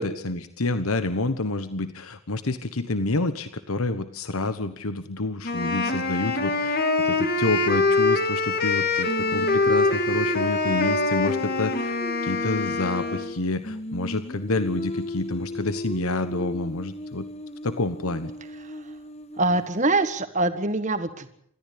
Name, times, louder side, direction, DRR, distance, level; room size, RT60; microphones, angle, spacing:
voice 1, 0.0-12.0 12.2-17.3 17.6-18.3, left 2 dB, 85° left, 10 dB, 1.2 m, -28 dB
Wind instrument woodwind instrument, 5.4-13.4, left 3 dB, 45° left, 2.3 m, -24 dB
Singing, 9.1-13.4 13.6-19.6, left 1 dB, 30° left, 1.1 m, -35 dB
voice 2, 19.4-21.3, right 2 dB, 35° right, 10 dB, 1.6 m, -24 dB
28.0 x 14.0 x 8.5 m, 0.68 s
head